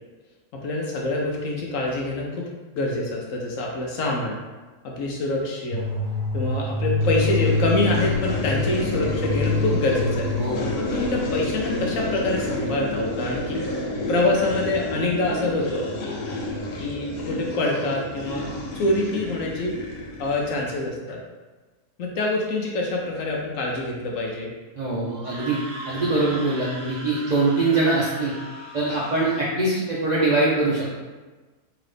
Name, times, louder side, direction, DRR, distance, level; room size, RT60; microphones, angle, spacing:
voice 1, 0.6-2.5 2.7-4.4 4.8-5.9 6.3-10.3 10.8-13.6 14.1-15.9 16.8-19.7 20.2-21.2 22.0-24.5, left 2 dB, 65° left, -1 dB, 0.9 m, -25 dB
sound 1, 5.7-12.1, left 2 dB, 35° left, 1.2 m, -26 dB
sound 2, 7.0-20.9, left 1 dB, 85° left, 1.3 m, -30 dB
voice 2, 24.8-25.6 25.9-28.3 28.7-30.9, right 2 dB, 85° right, -6 dB, 0.3 m, -23 dB
Screaming, 25.1-29.5, right 1 dB, 60° right, 1.1 m, -39 dB
3.8 x 2.9 x 3.3 m, 1.3 s
omnidirectional pair, 1.7 m